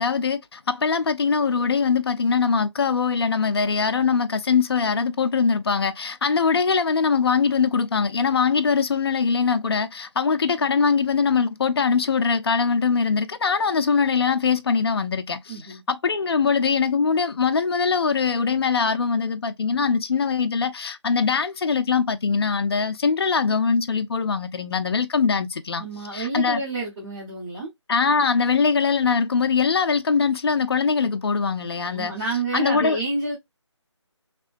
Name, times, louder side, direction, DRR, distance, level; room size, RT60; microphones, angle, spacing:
voice 1, 0.0-25.8 26.1-26.6 27.9-32.1 32.5-33.0, left 5 dB, 55° left, 0.4 m, -22 dB
voice 2, 15.5-15.8 25.8-27.7 31.9-33.4, right 3 dB, 10° right, 0.8 m, -29 dB
3.3 x 2.9 x 2.4 m
figure-of-eight pair, 165°, 16 cm